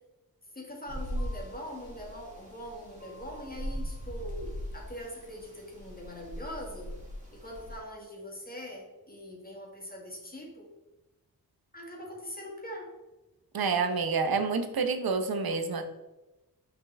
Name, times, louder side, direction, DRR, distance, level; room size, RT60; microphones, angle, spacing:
voice 1, 0.5-7.0 7.3-10.7 11.7-13.0, left 1 dB, 25° left, -1 dB, 1.9 m, -42 dB
sound 1, 0.9-7.8, equal, 20° right, 2.2 m, -40 dB
voice 2, 13.5-15.8, right 4 dB, 75° right, 8 dB, 0.9 m, -28 dB
5.7 x 5.6 x 3.4 m, 1.0 s
wide cardioid pair, 80°, 37 cm